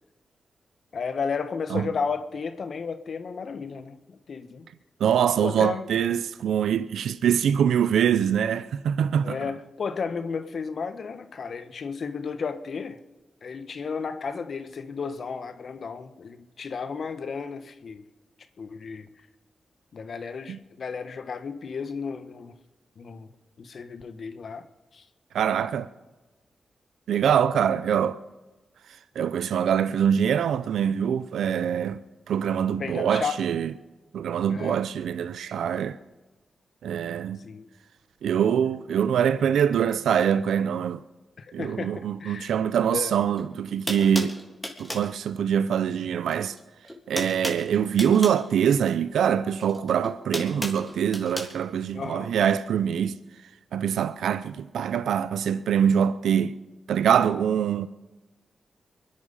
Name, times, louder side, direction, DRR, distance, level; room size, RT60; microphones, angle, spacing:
voice 1, 0.9-4.7 5.4-5.9 9.2-13.0 13.4-18.0 18.6-19.1 19.9-22.5 23.0-23.3 23.6-24.6 24.9-25.0 32.8-33.4 34.5-34.8 37.4-37.7 41.4-42.5 42.9-43.2 51.9-52.4, left 5 dB, 65° left, 1.2 m, -33 dB
voice 2, 5.0-9.4 20.5-20.6 25.3-25.9 27.1-28.2 29.2-32.0 32.3-33.7 34.1-36.0 36.8-37.4 38.2-41.0 41.5-44.4 44.8-46.5 47.1-53.2 53.7-56.5 56.9-57.9, right 8 dB, 85° right, 0.5 m, -24 dB
sound 1, 43.3-43.4 43.9-45.1 46.3-46.6 46.8-48.4 49.6-51.5, left 1 dB, 10° left, 3.2 m, -34 dB
23.5 x 10.5 x 5.6 m
cardioid pair, 55°, 0 cm